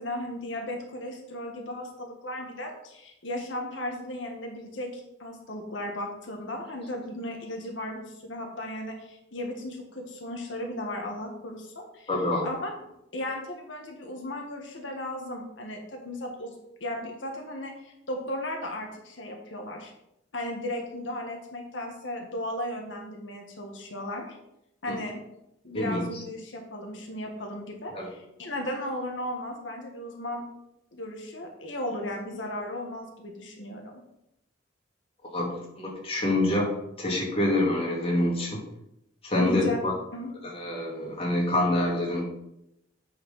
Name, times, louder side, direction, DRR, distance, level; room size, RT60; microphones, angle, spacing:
voice 1, 0.0-12.1 12.4-12.7 13.1-19.9 20.3-24.3 24.8-25.2 25.6-30.4 30.9-34.0 39.3-39.8 40.1-40.3, left 1 dB, 85° left, 1 dB, 1.6 m, -36 dB
voice 2, 12.1-12.5 25.7-26.0 27.9-28.1 35.3-36.7 37.0-38.6 39.2-39.9 40.4-42.2, left 1 dB, 30° left, -3 dB, 2.3 m, -26 dB
8.6 x 5.0 x 5.6 m, 0.82 s
head